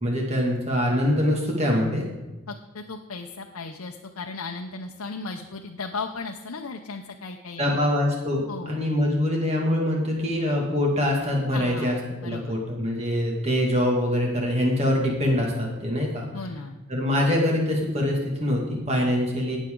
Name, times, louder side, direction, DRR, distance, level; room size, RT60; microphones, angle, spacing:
voice 1, 0.0-2.0 7.6-16.3 16.9-19.6, left 1 dB, 30° right, -1 dB, 2.2 m, -24 dB
voice 2, 2.5-7.9 8.5-8.9 11.5-12.6 16.3-16.8, left 4 dB, 85° left, 3 dB, 0.8 m, -36 dB
18.5 x 7.3 x 3.9 m, 1.1 s
head